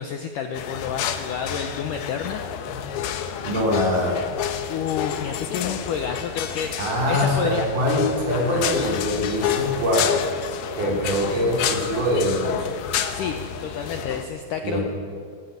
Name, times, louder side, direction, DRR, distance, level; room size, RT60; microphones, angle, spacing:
voice 1, 0.0-2.5 4.7-7.7 8.3-8.6 13.1-14.8, left 7 dB, 85° left, 6 dB, 1.8 m, -30 dB
sound 1, 0.5-14.2, left 9 dB, 70° left, 2.8 m, -29 dB
voice 2, 3.4-4.2 6.8-10.2 10.7-12.7 14.6-14.8, equal, 45° right, -3 dB, 6.7 m, -23 dB
20.0 x 15.0 x 9.5 m, 2.2 s
omnidirectional pair, 5.2 m